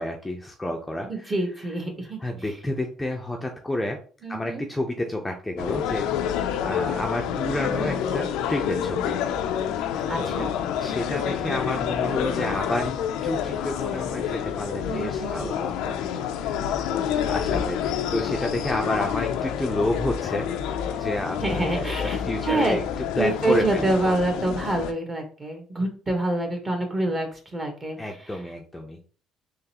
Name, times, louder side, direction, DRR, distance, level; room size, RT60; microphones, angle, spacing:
voice 1, 0.0-1.1 2.2-4.0 4.3-6.1 6.4-9.2 10.2-10.5 10.8-12.9 13.2-15.9 17.3-22.8 23.2-23.9 28.0-29.0, left 1 dB, 10° left, 2 dB, 0.6 m, -30 dB
voice 2, 1.1-2.2 4.2-4.6 7.6-8.0 10.1-10.5 14.8-15.5 21.4-22.8 23.1-28.4, right 2 dB, 25° right, 3 dB, 1.3 m, -27 dB
sound 1, 5.6-24.9, left 9 dB, 85° left, 0.4 m, -28 dB
3.8 x 3.1 x 2.9 m, 0.40 s
cardioid pair, 105°, 0 cm